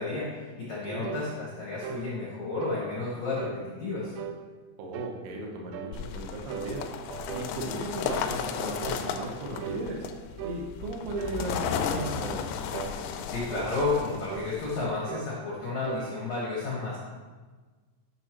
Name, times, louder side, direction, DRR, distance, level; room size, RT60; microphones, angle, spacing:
voice 1, 0.0-4.1 13.3-17.0, left 3 dB, 70° left, -6 dB, 1.6 m, -32 dB
sound 1, 1.0-1.3 1.8-2.1 2.6-2.8 3.4-3.6 4.2-4.4 4.9-5.2 5.7-6.0 6.5-7.5 8.0-8.3 8.8-9.1 9.6-9.8 10.4-10.6 11.2-11.4 12.0-12.2 12.7-13.0 13.5-13.8 14.3-14.5 15.1-15.3 15.8-16.1, right 9 dB, 85° right, 2.6 m, -38 dB
voice 2, 4.8-6.8 7.3-10.1 10.4-12.4, right 1 dB, 70° right, 0 dB, 2.7 m, -36 dB
sound 2, 5.9-14.8, left 7 dB, 90° left, 3.2 m, -34 dB
10.0 x 6.8 x 3.1 m, 1.4 s
omnidirectional pair, 5.7 m